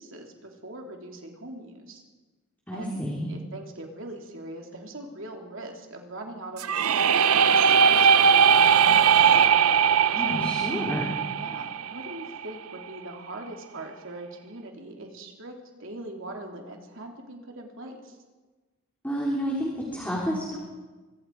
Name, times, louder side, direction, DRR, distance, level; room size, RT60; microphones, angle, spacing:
voice 1, 0.0-2.0 2.7-7.1 7.5-9.4 10.2-10.5 11.3-18.2, right 1 dB, 60° right, 1 dB, 3.4 m, -41 dB
voice 2, 2.7-3.3 10.1-11.2 19.0-20.6, equal, 10° left, -4 dB, 3.8 m, -30 dB
sound 1, 6.6-12.4, right 7 dB, 80° right, 0.7 m, -20 dB
25.0 x 24.0 x 4.9 m, 1.3 s
head